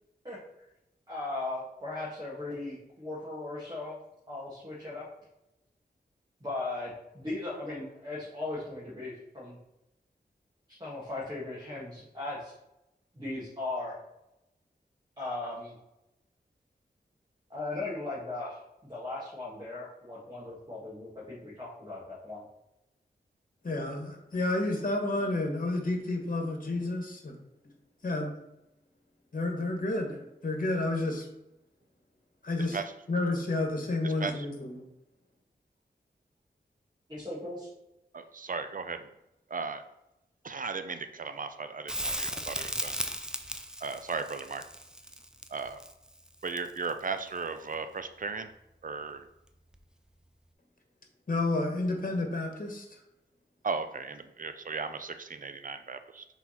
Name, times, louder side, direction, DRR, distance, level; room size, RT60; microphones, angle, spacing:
voice 1, 1.1-4.0 4.3-5.0 6.4-9.6 10.7-12.5 13.1-14.0 15.2-15.7 17.5-22.4 37.1-37.7, left 2 dB, 25° right, -8 dB, 2.3 m, -38 dB
voice 2, 23.6-27.3 28.0-28.3 29.3-31.3 32.4-32.8 33.1-34.8 51.3-52.8, left 2 dB, 50° left, 3 dB, 1.5 m, -30 dB
voice 3, 34.0-34.5 38.1-39.1 39.5-39.8 40.4-43.0 43.8-44.6 45.5-45.8 46.4-48.5 48.8-49.3 53.6-56.3, right 4 dB, 50° right, 9 dB, 0.6 m, -36 dB
Crackle, 41.9-47.0 49.7-49.8, equal, 5° right, 0.6 m, -36 dB
6.1 x 4.0 x 4.3 m, 0.87 s
wide cardioid pair, 70°, 18 cm